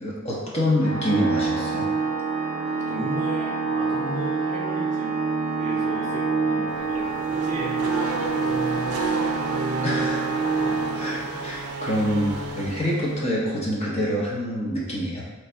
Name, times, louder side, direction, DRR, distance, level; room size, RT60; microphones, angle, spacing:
voice 1, 0.0-1.9 9.8-10.5 11.0-15.3, equal, 30° left, -5 dB, 0.7 m, -26 dB
Organ, 0.8-11.6, right 4 dB, 60° left, 0.8 m, -26 dB
voice 2, 2.9-5.1 5.6-7.1 7.4-9.2 10.6-10.8, right 1 dB, 35° right, -4 dB, 0.7 m, -36 dB
Race car auto racing / Accelerating revving vroom, 6.7-13.4, right 3 dB, 85° right, 0.4 m, -32 dB
3.2 x 2.6 x 4.3 m, 1.2 s
head